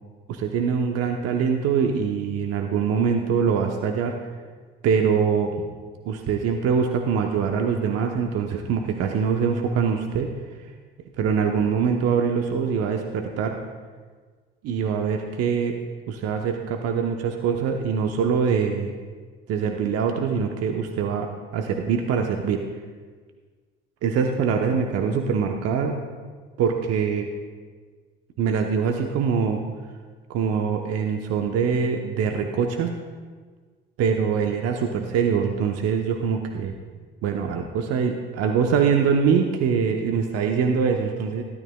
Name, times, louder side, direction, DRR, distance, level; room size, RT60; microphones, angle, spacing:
voice 1, 0.3-4.2 4.8-5.5 6.0-10.3 11.2-13.6 14.6-15.8 16.1-18.9 19.5-21.3 21.5-22.6 24.0-26.0 26.6-27.3 28.4-29.6 30.3-32.9 34.0-36.7 37.2-41.4, right 6 dB, 55° right, 3 dB, 1.0 m, -23 dB
17.0 x 12.0 x 2.3 m, 1.5 s
hypercardioid pair, 55°, 29 cm